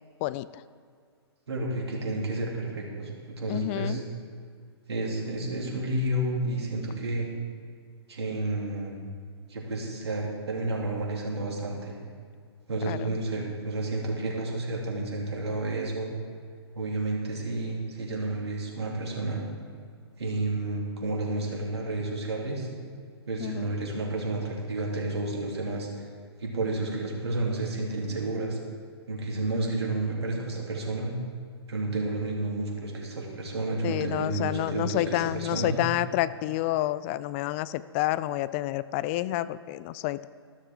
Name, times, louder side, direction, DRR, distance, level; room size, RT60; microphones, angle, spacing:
voice 1, 1.5-4.0 4.9-7.3 8.1-9.0 9.5-11.9 12.7-16.1 16.7-19.4 20.2-22.7 23.3-26.0 26.4-28.6 29.1-31.1 31.7-35.8, right 2 dB, 75° right, -2 dB, 3.1 m, -31 dB
voice 2, 3.5-4.0 12.9-13.2 23.4-23.7 33.8-40.3, left 16 dB, 30° left, 16 dB, 0.3 m, -29 dB
14.0 x 13.0 x 3.7 m, 2.1 s
hypercardioid pair, 125°, 14 cm